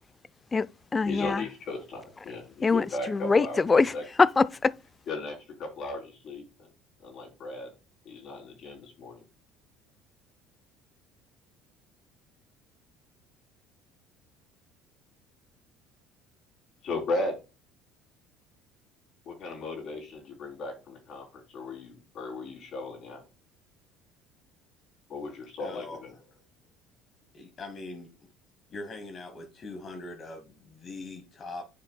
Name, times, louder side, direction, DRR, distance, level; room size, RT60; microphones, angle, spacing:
voice 1, 0.5-1.5 2.6-4.7, left 4 dB, 25° left, 0.3 m, -23 dB
voice 2, 1.0-3.6 3.9-4.0 5.1-6.4 7.0-7.7 8.0-9.2 16.8-17.4 19.2-23.2 25.1-26.1, left 2 dB, 55° left, 3.3 m, -36 dB
voice 3, 25.6-26.4 27.3-28.3 28.7-31.7, left 2 dB, 40° left, 1.2 m, -42 dB
9.6 x 5.1 x 2.2 m
supercardioid pair, 85°, 0 cm